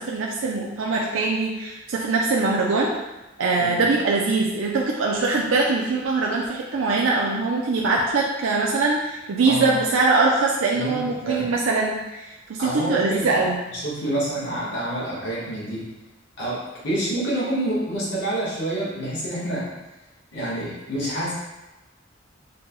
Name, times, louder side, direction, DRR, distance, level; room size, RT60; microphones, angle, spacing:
voice 1, 0.0-2.9 3.4-13.6, right 3 dB, 80° right, -2 dB, 0.5 m, -22 dB
voice 2, 9.4-9.8 10.7-11.4 12.6-13.4 13.7-15.8 16.4-19.6 20.3-21.3, right 1 dB, 65° left, -8 dB, 1.4 m, -28 dB
6.1 x 2.2 x 3.0 m, 1.0 s
head